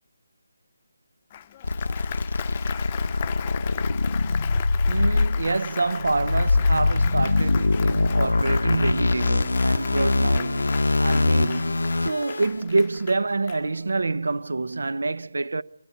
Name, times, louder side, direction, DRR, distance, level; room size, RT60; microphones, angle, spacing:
Applause, 1.3-14.0, left 10 dB, 25° left, 0.7 m, -39 dB
sound 1, 1.6-12.5, left 3 dB, 85° left, 0.7 m, -23 dB
voice 1, 4.9-15.6, right 3 dB, 75° right, 0.8 m, -27 dB
22.0 x 13.5 x 9.4 m
figure-of-eight pair, 165°, 0 cm